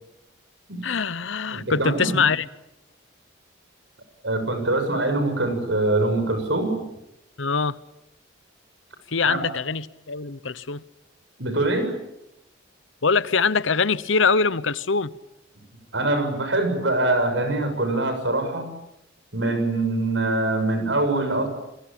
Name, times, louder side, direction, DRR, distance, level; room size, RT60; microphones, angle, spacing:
voice 1, 0.8-2.5 7.4-7.8 9.1-10.8 13.0-15.1, left 5 dB, 75° left, 1.0 m, -23 dB
voice 2, 1.5-2.2 4.2-6.8 9.2-9.4 11.4-11.9 15.5-15.6 15.9-18.7 19.3-21.5, right 2 dB, 65° right, 6.8 m, -23 dB
29.0 x 22.0 x 8.9 m
head